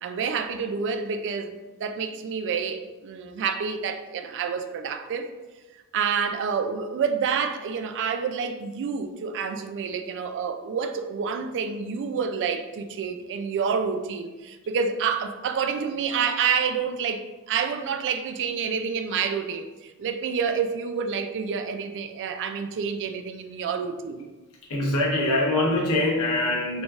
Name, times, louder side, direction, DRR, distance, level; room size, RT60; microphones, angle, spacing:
voice 1, 0.0-1.5 1.8-5.3 5.9-24.3, right 6 dB, 55° right, 0.3 m, -28 dB
voice 2, 24.7-26.8, left 1 dB, 85° left, 1.1 m, -23 dB
4.0 x 3.4 x 2.4 m
head